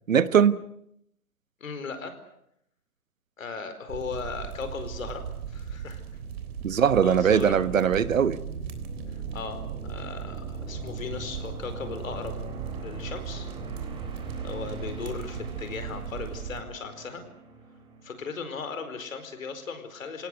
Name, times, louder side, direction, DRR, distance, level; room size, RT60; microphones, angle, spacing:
voice 1, 0.1-0.6 6.6-8.4, right 8 dB, 65° right, 15 dB, 1.3 m, -21 dB
voice 2, 1.6-2.1 3.4-6.0 6.7-7.6 9.3-9.6 9.9-12.4 12.8-13.5 14.4-17.2 18.0-20.3, left 5 dB, 65° left, 8 dB, 4.8 m, -37 dB
sound 1, 3.9-16.6, right 8 dB, 45° right, 3.6 m, -38 dB
sound 2, 7.5-18.3, right 1 dB, 10° right, 4.1 m, -42 dB
28.5 x 18.5 x 8.2 m, 0.75 s
figure-of-eight pair, 135°, 43 cm